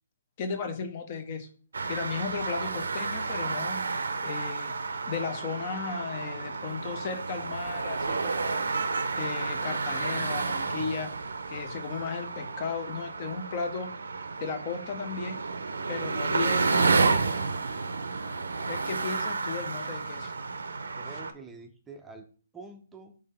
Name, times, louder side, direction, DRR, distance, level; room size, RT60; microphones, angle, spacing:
voice 1, 0.4-1.5 1.9-3.8 4.2-4.7 5.1-8.6 9.1-11.1 11.5-13.9 14.4-15.4 15.9-17.5 18.7-20.3, left 5 dB, 40° left, 7 dB, 0.6 m, -35 dB
sound 1, 1.7-21.3, right 4 dB, 80° right, 0.5 m, -31 dB
voice 2, 21.0-22.3 22.5-23.2, right 3 dB, 10° right, 3 dB, 0.5 m, -46 dB
3.9 x 3.2 x 3.3 m, 0.42 s
hypercardioid pair, 140°, 0 cm